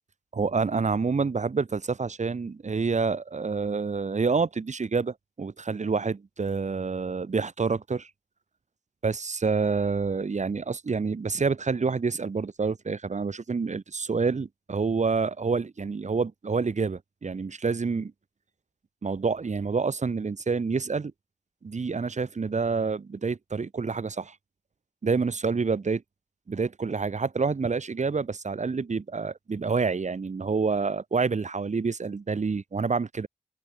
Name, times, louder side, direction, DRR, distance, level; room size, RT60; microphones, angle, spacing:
voice 1, 0.3-8.1 9.0-18.1 19.0-21.1 21.6-24.3 25.0-26.0 26.5-33.3, right 4 dB, 50° right, 3.0 m, -28 dB
supercardioid pair, 45°, 15 cm